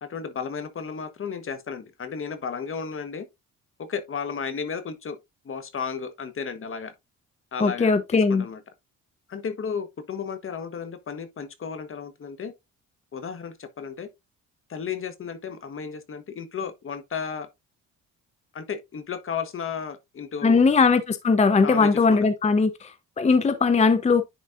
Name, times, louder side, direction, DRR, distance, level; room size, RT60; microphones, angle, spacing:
voice 1, 0.0-3.3 3.8-5.2 5.4-6.9 7.5-8.6 9.3-12.5 13.1-14.1 14.7-17.5 18.5-20.6 21.6-22.2, left 6 dB, 45° left, 1.3 m, -33 dB
voice 2, 7.6-8.5 20.4-24.2, left 4 dB, 20° left, 0.7 m, -20 dB
10.5 x 4.1 x 2.5 m
cardioid pair, 90°, 30 cm